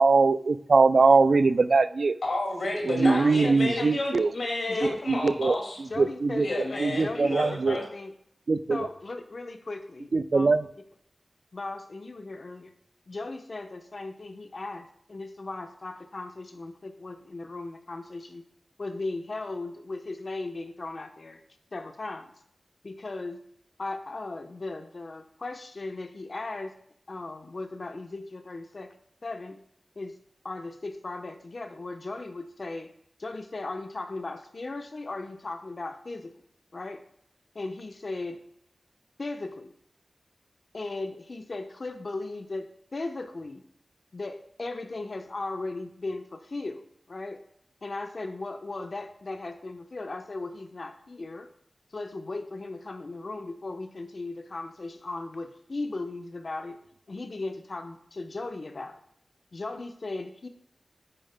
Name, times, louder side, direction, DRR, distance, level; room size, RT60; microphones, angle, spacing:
voice 1, 0.0-2.1 2.9-4.3 4.8-5.5 6.0-6.5 6.8-7.8 8.5-8.9 10.1-10.6, right 4 dB, 75° right, 14 dB, 0.4 m, -22 dB
voice 2, 2.2-5.8 6.4-7.8, left 2 dB, 85° left, -1 dB, 2.3 m, -30 dB
voice 3, 3.0-4.0 4.7-5.0 5.9-8.1 8.7-10.5 11.5-12.7 13.1-18.4 18.8-21.4 21.7-22.3 22.8-23.4 23.8-26.7 27.1-28.9 29.2-29.6 30.0-30.2 30.4-32.9 33.2-36.3 36.7-37.0 37.5-38.4 39.2-39.7 40.7-43.6 44.1-47.4 47.8-51.5 51.9-56.8 57.1-59.0 59.5-60.5, left 2 dB, 60° left, 6 dB, 0.9 m, -37 dB
10.0 x 9.0 x 2.2 m, 0.71 s
wide cardioid pair, 55°, 0 cm